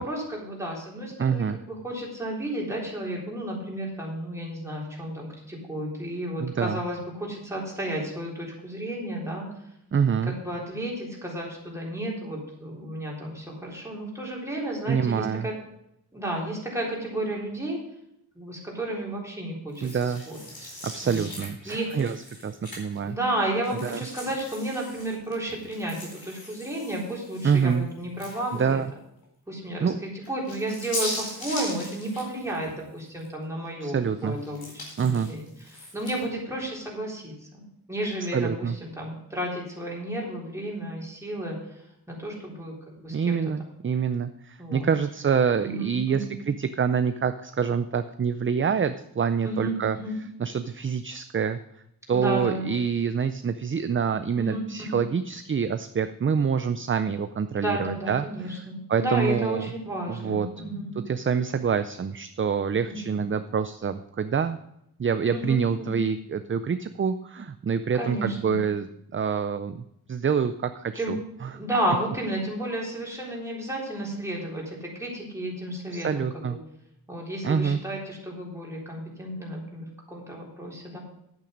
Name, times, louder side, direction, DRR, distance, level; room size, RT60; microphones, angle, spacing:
voice 1, 0.0-9.5 10.3-15.5 16.1-17.8 18.4-20.4 21.0-21.3 21.7-22.1 23.0-28.8 29.5-34.0 34.2-35.4 35.9-37.6 37.9-41.6 42.1-43.4 44.6-44.9 45.6-46.3 49.4-50.2 52.1-52.7 54.4-54.9 57.6-61.0 62.9-63.2 65.3-66.0 68.0-68.6 71.0-71.1 71.5-76.6 77.1-81.0, right 1 dB, 5° right, -4 dB, 3.7 m, -32 dB
voice 2, 1.2-1.6 6.4-6.8 9.9-10.3 14.9-15.5 19.8-20.2 20.8-22.2 22.4-23.2 23.8-24.0 27.4-27.9 28.5-28.9 29.8-30.0 33.8-34.4 35.0-35.3 38.3-38.8 43.1-50.0 50.4-51.6 52.1-59.7 60.1-60.5 61.1-64.6 65.0-68.9 69.1-71.2 71.4-71.5 75.9-76.6 77.4-77.8, right 6 dB, 35° right, 11 dB, 0.4 m, -26 dB
sound 1, 19.7-23.1 23.6-28.8 29.2-29.3 30.2-33.3 33.6-36.3, left 1 dB, 65° left, 4.4 m, -39 dB
10.5 x 8.5 x 5.1 m, 0.78 s
wide cardioid pair, 125°, 38 cm